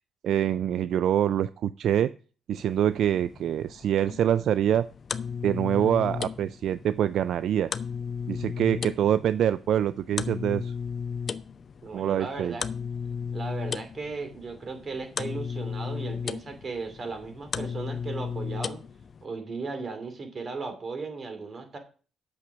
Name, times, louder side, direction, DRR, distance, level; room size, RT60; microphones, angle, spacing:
voice 1, 0.2-2.1 2.5-4.9 5.4-7.7 8.3-10.7 11.9-12.6, right 10 dB, 70° right, 15 dB, 0.3 m, -25 dB
sound 1, 2.5-19.2, left 6 dB, 45° left, 0.6 m, -35 dB
voice 2, 11.8-12.6 13.3-18.8 19.2-21.8, right 4 dB, 40° right, 6 dB, 2.8 m, -36 dB
8.5 x 6.6 x 6.1 m, 0.39 s
cardioid pair, 90°, 0 cm